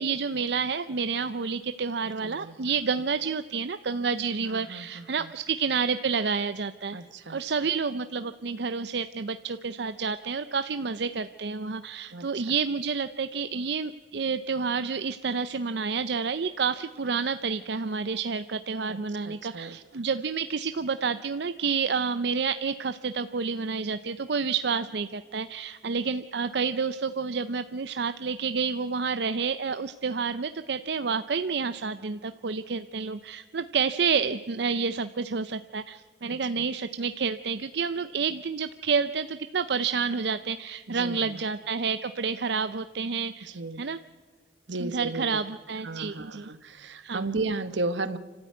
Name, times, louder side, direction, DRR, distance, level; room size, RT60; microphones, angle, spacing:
voice 1, 0.0-7.0 7.3-44.0 44.8-46.5 47.0-47.2, right 5 dB, 65° right, 11 dB, 0.6 m, -29 dB
voice 2, 2.2-2.7 4.4-5.3 6.9-7.4 12.1-12.4 18.9-19.0 19.2-19.8 36.3-36.6 40.9-41.4 43.5-43.8 44.7-45.4 45.8-48.2, right 3 dB, 80° right, 12 dB, 1.2 m, -34 dB
30.0 x 13.0 x 9.3 m, 1.4 s
head